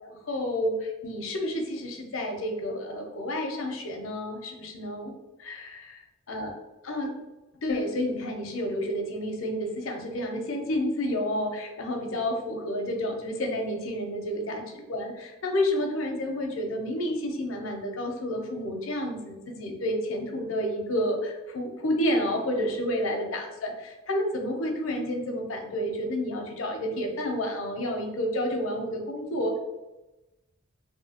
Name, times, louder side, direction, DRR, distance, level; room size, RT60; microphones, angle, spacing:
voice 1, 0.0-5.1 5.4-6.0 6.3-6.5 6.8-7.1 7.6-29.6, left 1 dB, 80° left, 2 dB, 0.5 m, -30 dB
2.8 x 2.6 x 2.8 m, 1.0 s
head